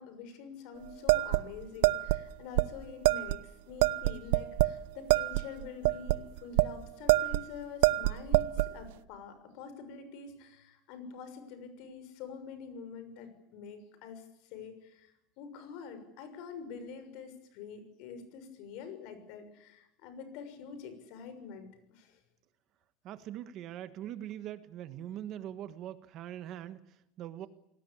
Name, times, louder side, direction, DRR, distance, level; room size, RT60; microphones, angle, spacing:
voice 1, 0.0-22.2, left 6 dB, 55° left, 10 dB, 6.3 m, -46 dB
sound 1, 1.1-2.2 2.6-2.7 3.0-3.4 3.8-4.8 5.1-6.7 7.1-7.5 7.8-8.7, right 18 dB, 80° right, 0.9 m, -26 dB
voice 2, 23.0-27.5, right 11 dB, 35° right, 12 dB, 1.4 m, -42 dB
28.0 x 19.0 x 8.7 m, 0.86 s
cardioid pair, 170°, 0 cm